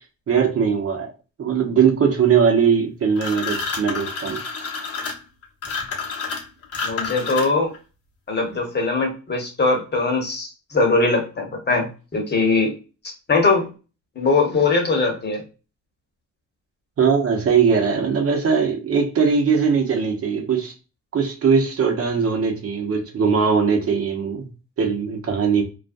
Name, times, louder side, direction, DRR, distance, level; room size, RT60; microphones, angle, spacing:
voice 1, 0.3-1.1 1.4-4.4 17.0-20.7 21.1-24.5 24.8-25.6, right 6 dB, 50° right, 0.8 m, -20 dB
sound 1, 3.2-7.8, left 5 dB, 50° left, 1.0 m, -29 dB
voice 2, 6.8-7.7 8.3-12.7 13.3-13.7 14.2-15.4, left 3 dB, 35° left, 1.1 m, -21 dB
2.4 x 2.2 x 2.5 m
cardioid pair, 90°, 30 cm